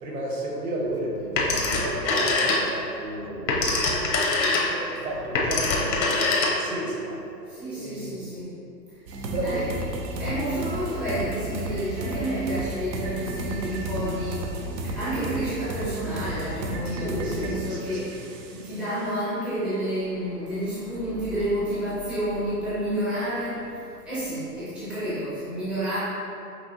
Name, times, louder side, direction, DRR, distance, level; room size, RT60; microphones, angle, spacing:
voice 1, 0.0-6.1 6.4-7.2 7.5-8.1 9.3-10.0 16.9-18.4, right 1 dB, 60° right, -3 dB, 1.4 m, -33 dB
Telephone, 1.4-2.9 3.3-6.9, left 3 dB, 85° left, 1.1 m, -24 dB
voice 2, 7.5-8.5 8.9-9.0 9.4-9.7 10.2-26.0, right 1 dB, ahead, -13 dB, 0.5 m, -30 dB
sound 1, 9.1-18.9, right 1 dB, 85° right, 0.7 m, -33 dB
6.3 x 2.8 x 2.7 m, 2.6 s
hypercardioid pair, 135°, 50 cm